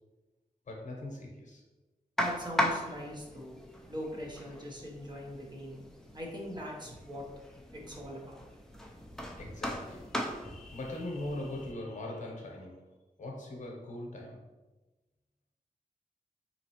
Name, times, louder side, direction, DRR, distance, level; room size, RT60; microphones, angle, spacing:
voice 1, 0.7-1.6 9.4-12.9 13.2-14.5, left 1 dB, 60° left, 0 dB, 0.8 m, -41 dB
sound 1, 2.2-11.7, equal, 5° left, 0.4 m, -38 dB
voice 2, 2.2-3.6 3.9-5.8 6.1-7.2 7.7-8.4, equal, 30° right, -2 dB, 0.6 m, -41 dB
3.9 x 2.9 x 2.8 m, 1.1 s
wide cardioid pair, 175°, 14 cm